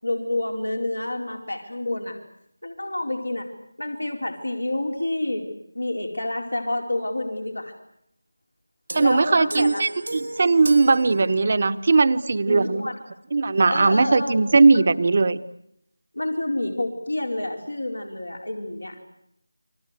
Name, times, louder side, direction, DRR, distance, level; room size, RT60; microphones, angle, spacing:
voice 1, 0.0-2.2 2.6-3.5 3.8-5.5 5.7-7.7 9.0-9.9 12.5-13.0 13.7-14.3 16.1-19.1, left 1 dB, 85° left, 4 dB, 4.7 m, -28 dB
voice 2, 8.9-12.9 13.3-15.4, right 3 dB, 40° right, 12 dB, 1.2 m, -19 dB
sound 1, 8.9-11.9, right 1 dB, 80° right, 2.0 m, -35 dB
29.5 x 23.5 x 8.3 m, 0.76 s
figure-of-eight pair, 165°, 0 cm